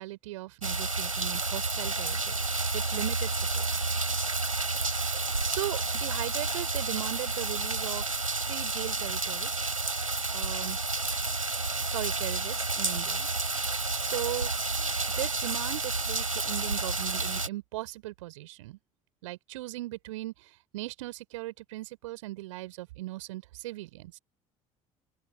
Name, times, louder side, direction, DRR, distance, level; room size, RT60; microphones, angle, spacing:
voice 1, 0.0-2.3 2.7-3.7 5.4-9.6 10.3-10.8 11.9-13.3 14.0-14.5 14.8-18.8 19.2-24.2, right 18 dB, 70° right, 5.5 m, -38 dB
sound 1, 0.6-17.5, right 3 dB, 90° right, 4.3 m, -30 dB
open air
figure-of-eight pair, 55°, 17 cm